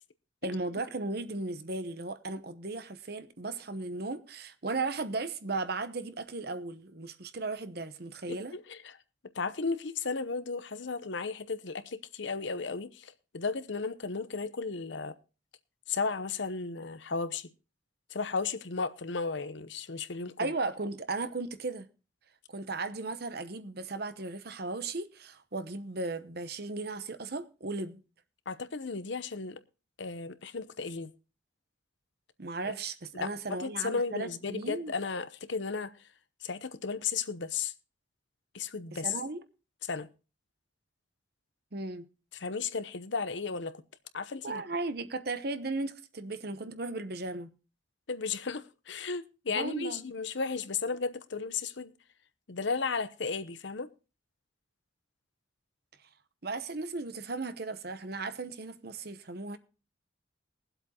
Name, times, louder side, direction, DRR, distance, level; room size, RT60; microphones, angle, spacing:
voice 1, 0.4-8.5 20.4-21.9 22.5-28.0 32.4-34.9 38.9-39.4 41.7-42.1 44.4-47.5 49.5-50.0 56.4-59.6, right 3 dB, 50° right, 0.9 m, -36 dB
voice 2, 8.3-9.0 9.3-15.1 15.9-17.5 18.1-20.5 28.5-29.6 30.0-31.1 32.6-32.7 33.1-33.3 33.6-35.9 36.4-37.7 38.5-39.1 39.9-40.1 42.3-43.7 44.1-44.6 48.1-51.9 52.5-53.9, left 4 dB, 70° left, 0.8 m, -34 dB
22.0 x 7.9 x 2.9 m
head